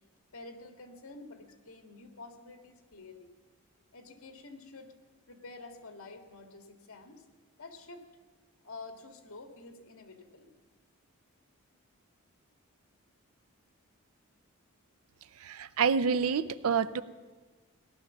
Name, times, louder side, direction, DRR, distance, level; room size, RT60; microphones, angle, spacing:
voice 1, 0.3-3.3 3.9-4.9 5.3-7.3 7.6-8.1 8.6-10.6, left 3 dB, 75° left, 6 dB, 1.8 m, -49 dB
voice 2, 15.4-17.0, right 6 dB, 80° right, 15 dB, 0.6 m, -28 dB
17.0 x 11.0 x 7.2 m, 1.3 s
head